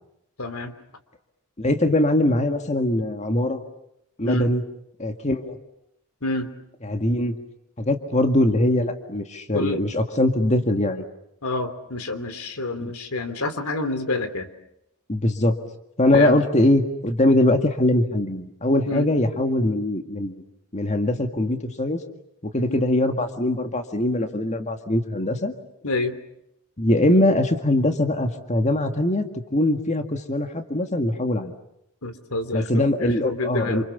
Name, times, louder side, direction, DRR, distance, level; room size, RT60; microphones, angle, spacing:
voice 1, 0.4-0.7 4.2-4.5 6.2-6.5 9.5-9.8 10.1-10.3 11.4-14.5 16.1-16.4 18.9-19.1 22.7-22.8 25.8-26.2 32.0-33.8, left 2 dB, 80° left, 10 dB, 3.1 m, -28 dB
voice 2, 1.6-3.6 4.2-4.6 5.0-5.6 6.8-7.4 7.8-11.1 12.8-12.9 15.1-15.6 16.0-20.4 20.7-22.0 22.4-25.5 26.8-31.5 32.5-33.8, left 1 dB, 30° left, 6 dB, 2.0 m, -22 dB
28.5 x 28.0 x 7.1 m, 0.80 s
head